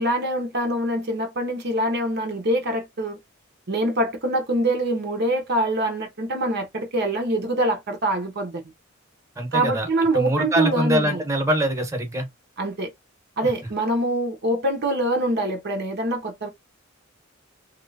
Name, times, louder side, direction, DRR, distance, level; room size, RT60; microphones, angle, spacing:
voice 1, 0.0-3.2 3.7-8.6 9.5-11.2 12.6-12.9 13.4-16.5, right 1 dB, 55° right, 0.9 m, -24 dB
voice 2, 9.4-9.9 10.1-12.3 13.4-13.5, right 1 dB, 15° right, 1.2 m, -23 dB
3.1 x 3.0 x 2.7 m
head